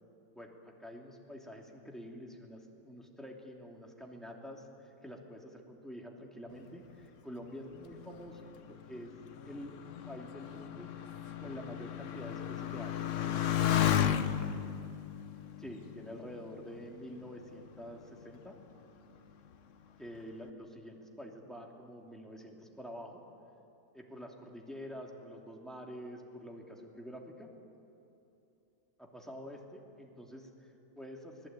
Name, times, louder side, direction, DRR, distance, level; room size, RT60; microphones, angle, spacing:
voice 1, 0.3-9.1 9.4-9.7 10.1-10.9 11.4-13.7 15.6-18.6 20.0-23.2 23.9-27.5 29.0-31.5, equal, ahead, 0 dB, 2.7 m, -47 dB
Motorcycle, 7.9-16.9 17.6-18.2, left 10 dB, 55° left, 1.0 m, -34 dB
24.5 x 19.5 x 9.0 m, 2.9 s
omnidirectional pair, 1.8 m